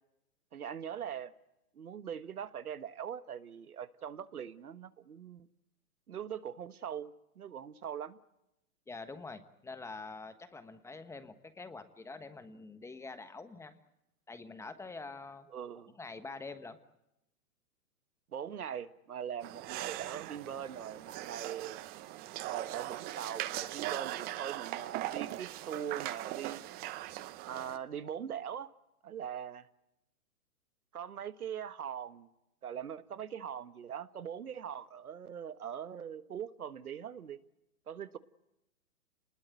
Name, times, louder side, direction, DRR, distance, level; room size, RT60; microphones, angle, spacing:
voice 1, 0.5-1.3 1.7-5.5 6.1-8.2 15.5-15.9 18.3-21.8 22.4-26.6 27.4-28.7 29.0-29.7 30.9-32.3 32.6-37.4 37.9-38.2, right 8 dB, 80° right, 14 dB, 1.4 m, -41 dB
voice 2, 8.9-13.7 14.3-15.5 16.0-16.8, left 3 dB, 5° left, 11 dB, 1.2 m, -46 dB
sound 1, 19.4-27.8, right 15 dB, 20° right, 0.8 m, -40 dB
28.5 x 20.5 x 8.2 m, 0.89 s
hypercardioid pair, 135°, 44 cm